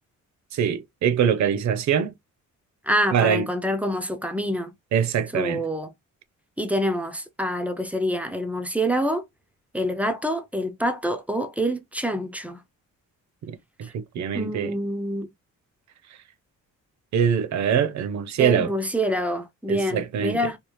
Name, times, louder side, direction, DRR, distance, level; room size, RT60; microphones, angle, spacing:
voice 1, 0.5-2.1 3.1-3.5 4.9-5.6 13.5-14.7 17.1-18.7 19.7-20.4, right 8 dB, 65° right, 0.7 m, -23 dB
voice 2, 2.8-4.7 5.3-5.9 6.6-9.2 9.7-12.6 13.8-13.9 14.3-15.3 18.4-20.6, equal, 5° right, 0.4 m, -26 dB
3.5 x 2.4 x 3.0 m
cardioid pair, 155°, 31 cm